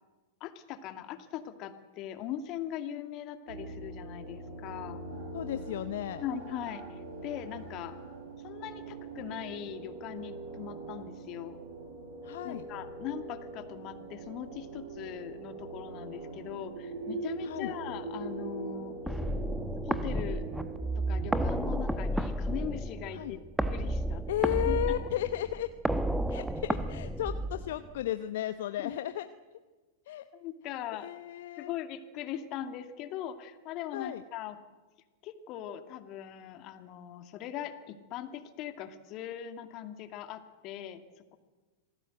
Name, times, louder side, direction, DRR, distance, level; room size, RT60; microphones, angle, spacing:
voice 1, 0.4-5.0 6.2-8.0 8.4-11.6 12.4-19.0 19.8-20.4 20.9-24.2 24.6-25.1 30.3-31.1 31.6-34.6 35.2-41.4, left 10 dB, 40° left, 8 dB, 2.3 m, -40 dB
sound 1, 3.5-21.8, right 3 dB, 65° right, 6.5 m, -42 dB
voice 2, 5.3-6.2 12.2-12.6 17.4-17.7 23.1-23.4 24.3-25.7 26.3-29.3 30.1-30.2 31.0-31.7 33.9-34.2, left 12 dB, 55° left, 11 dB, 0.9 m, -34 dB
sound 2, 19.1-28.0, right 1 dB, 5° right, 1.2 m, -32 dB
27.0 x 18.5 x 7.9 m, 1.3 s
figure-of-eight pair, 100°, 0 cm